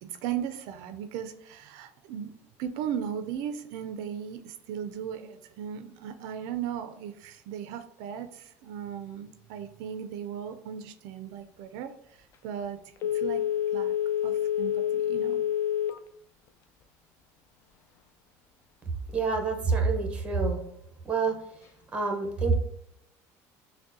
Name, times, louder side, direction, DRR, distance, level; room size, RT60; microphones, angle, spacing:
voice 1, 0.0-2.3 2.6-12.8 13.1-13.4 13.7-13.9 14.2-15.4, right 9 dB, 75° right, 9 dB, 0.4 m, -37 dB
Telephone, 13.0-16.1 16.5-16.6, left 10 dB, 40° left, 0.3 m, -28 dB
voice 2, 19.1-20.6 21.1-21.3 21.9-22.5, right 4 dB, 15° right, 3 dB, 0.8 m, -26 dB
6.0 x 2.1 x 2.6 m, 0.73 s
cardioid pair, 145°, 7 cm